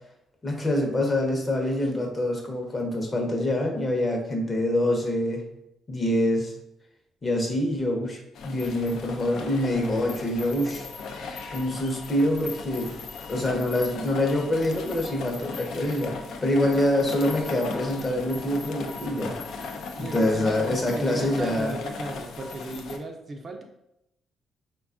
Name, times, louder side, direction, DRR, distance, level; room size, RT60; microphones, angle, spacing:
voice 1, 0.4-5.4 5.9-6.5 7.2-10.9 11.5-13.0 13.3-19.4 20.0-21.8, left 1 dB, 30° left, 1 dB, 0.7 m, -25 dB
sound 1, 8.3-23.0, left 4 dB, 75° left, 0.3 m, -37 dB
voice 2, 20.0-23.6, right 2 dB, 40° right, 3 dB, 0.4 m, -36 dB
3.4 x 2.2 x 2.4 m, 0.81 s
cardioid pair, 90°, 0 cm